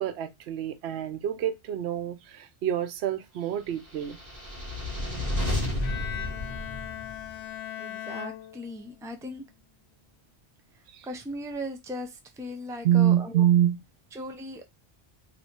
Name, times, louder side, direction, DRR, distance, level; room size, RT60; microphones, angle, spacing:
voice 1, 0.0-4.2 10.9-11.1 12.8-13.8, right 11 dB, 90° right, 0.8 m, -26 dB
sound 1, 3.9-7.4, left 1 dB, 40° right, 1.4 m, -31 dB
Bowed string instrument, 5.8-9.2, left 10 dB, 65° left, 0.7 m, -39 dB
voice 2, 7.8-9.4 11.0-13.5 14.1-14.6, equal, 5° right, 0.3 m, -38 dB
2.7 x 2.6 x 4.3 m
omnidirectional pair, 1.1 m